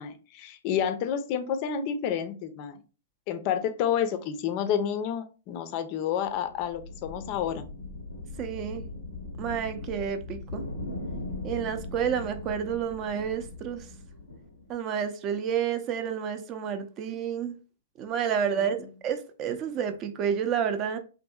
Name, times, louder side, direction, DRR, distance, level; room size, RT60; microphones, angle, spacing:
voice 1, 0.0-2.8 3.3-7.7 18.6-18.7, left 8 dB, 45° left, 0.4 m, -29 dB
sound 1, 6.2-14.7, left 2 dB, 85° left, 0.6 m, -39 dB
voice 2, 8.4-8.8 9.4-10.7 11.4-13.9 14.7-17.5 18.0-21.0, right 8 dB, 35° right, 0.4 m, -30 dB
2.6 x 2.6 x 2.3 m
hypercardioid pair, 115°, 0 cm